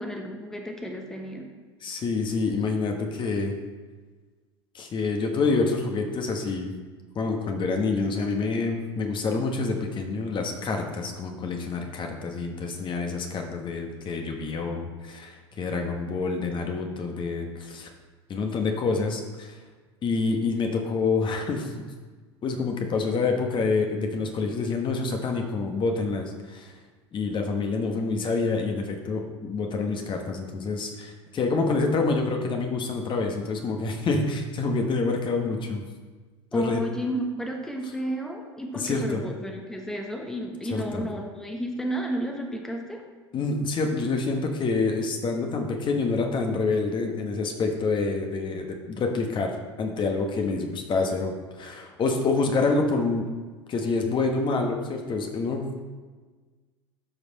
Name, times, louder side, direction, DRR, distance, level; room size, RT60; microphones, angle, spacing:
voice 1, 0.0-1.5 36.5-43.0, equal, 5° left, 2 dB, 1.2 m, -32 dB
voice 2, 1.8-3.6 4.7-6.7 7.1-17.9 18.3-19.6 20.0-21.9 22.4-26.7 27.1-35.8 36.5-36.8 38.7-39.2 40.7-41.1 43.3-53.3 53.7-55.8, left 3 dB, 35° left, 3 dB, 1.3 m, -27 dB
12.0 x 5.3 x 4.2 m, 1.4 s
hypercardioid pair, 80°, 15 cm